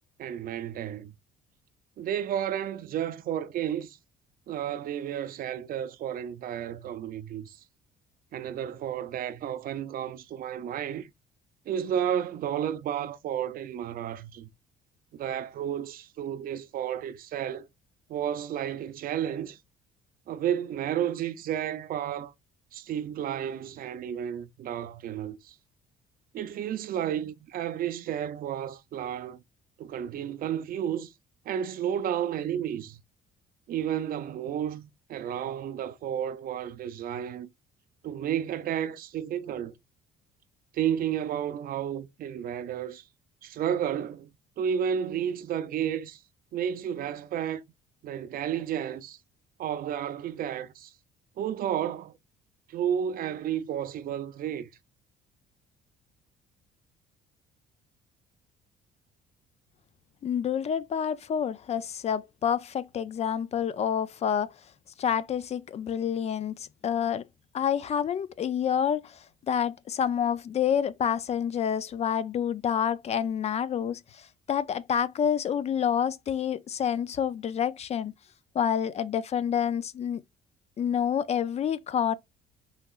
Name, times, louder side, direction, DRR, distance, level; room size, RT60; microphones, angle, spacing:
voice 1, 0.2-1.1 2.0-4.0 4.5-7.6 8.3-11.1 11.7-14.5 15.1-17.7 18.1-19.6 20.3-22.3 22.7-25.6 26.3-29.4 29.8-31.1 31.5-33.0 33.7-37.5 38.0-39.7 40.7-43.0 43.4-44.3 44.6-46.2 46.5-47.6 48.0-49.2 49.6-50.9 51.4-52.1 52.7-54.7, right 9 dB, 60° right, 0.6 m, -32 dB
voice 2, 60.2-64.6 65.0-67.2 67.5-78.1 78.5-80.2 80.8-82.2, left 8 dB, 40° left, 0.4 m, -28 dB
5.7 x 3.0 x 2.4 m
cardioid pair, 110°, 17 cm